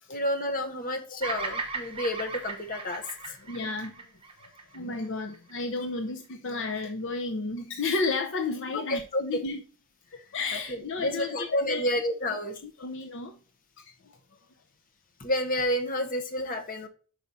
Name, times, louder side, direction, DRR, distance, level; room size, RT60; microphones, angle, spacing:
voice 1, 0.1-3.4 8.9-9.4 10.7-12.6 15.2-16.9, left 1 dB, 40° left, 1.0 m, -30 dB
Bird vocalization bird call bird song, 1.2-5.5, right 3 dB, 25° right, 0.9 m, -37 dB
voice 2, 3.4-4.0 4.4-9.6 10.1-11.9 12.2-12.3 12.6-13.4 13.8-14.1, left 3 dB, 60° left, 0.6 m, -33 dB
5.4 x 4.9 x 4.0 m
head